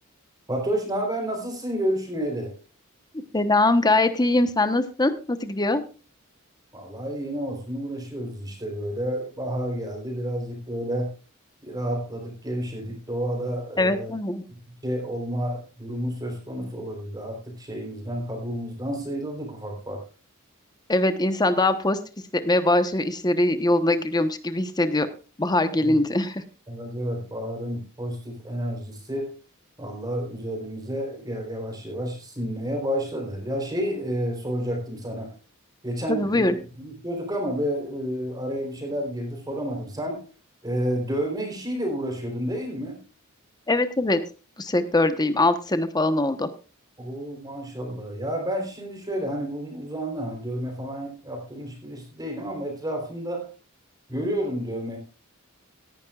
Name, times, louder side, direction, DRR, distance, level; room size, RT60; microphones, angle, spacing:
voice 1, 0.5-2.6 6.7-11.1 11.6-14.1 14.5-20.1 25.8-26.0 26.7-29.3 29.8-35.3 35.8-40.3 40.6-43.0 47.0-53.5 54.1-55.0, equal, 20° right, 2 dB, 3.8 m, -30 dB
voice 2, 3.3-5.8 13.8-14.4 20.9-22.0 22.4-25.1 25.4-26.4 36.1-36.5 43.7-44.2 44.6-46.5, left 2 dB, 20° left, 10 dB, 1.0 m, -22 dB
17.5 x 10.5 x 2.4 m, 0.34 s
head